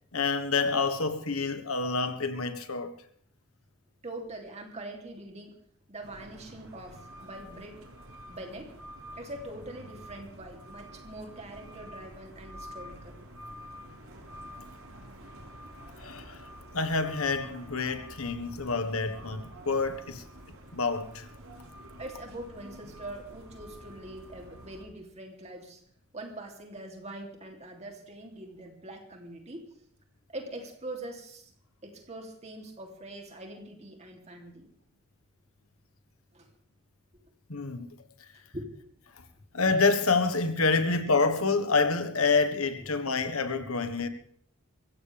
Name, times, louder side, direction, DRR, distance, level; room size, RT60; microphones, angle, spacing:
voice 1, 0.1-2.9 16.0-16.5 16.7-20.2 20.7-21.3 37.5-37.9 39.5-44.1, left 4 dB, 85° left, 1.5 m, -27 dB
voice 2, 4.0-5.5 5.9-7.8 8.3-8.7 9.2-13.2 22.0-25.8 26.1-29.7 30.3-31.5 31.8-34.7 36.3-36.5 38.5-38.7 40.7-40.8 42.8-42.9 43.6-43.7, right 1 dB, 30° right, 3.1 m, -43 dB
sound 1, 6.0-24.8, equal, 85° right, 4.8 m, -48 dB
23.5 x 16.0 x 3.5 m
head